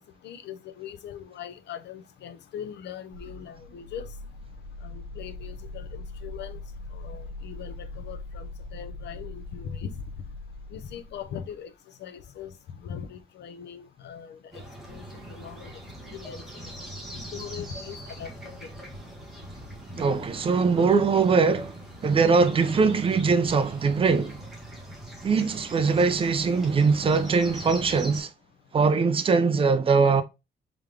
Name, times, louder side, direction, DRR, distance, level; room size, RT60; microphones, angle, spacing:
voice 1, 0.2-4.1 4.8-6.6 6.9-9.9 10.7-11.7 12.0-12.5 12.8-14.6 14.9-15.7 16.0-16.7 17.3-18.3 18.6-18.7, left 8 dB, 65° left, 0.6 m, -40 dB
sound 1, 3.1-11.3, left 2 dB, 50° right, 1.0 m, -41 dB
sound 2, 14.5-28.2, equal, ahead, 1.4 m, -42 dB
voice 2, 20.0-21.8 22.0-24.4 25.2-28.3 28.7-30.2, right 4 dB, 30° right, 0.5 m, -22 dB
3.6 x 3.5 x 3.2 m
cardioid pair, 170°, 19 cm